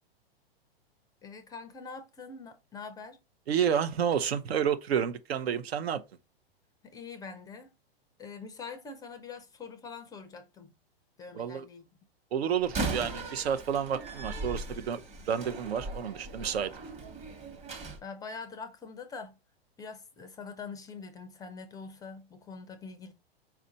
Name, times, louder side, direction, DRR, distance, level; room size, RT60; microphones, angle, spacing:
voice 1, 1.2-3.2 6.8-7.7 8.2-10.7 11.2-11.8 18.0-19.4 19.8-23.1, left 5 dB, 10° left, 0.4 m, -44 dB
voice 2, 3.5-6.0 11.3-11.6 12.3-15.0 15.3-16.7, right 8 dB, 80° right, 0.7 m, -30 dB
Slam, 12.6-18.0, right 3 dB, 20° right, 1.0 m, -38 dB
4.4 x 2.5 x 3.9 m
hypercardioid pair, 115°, 31 cm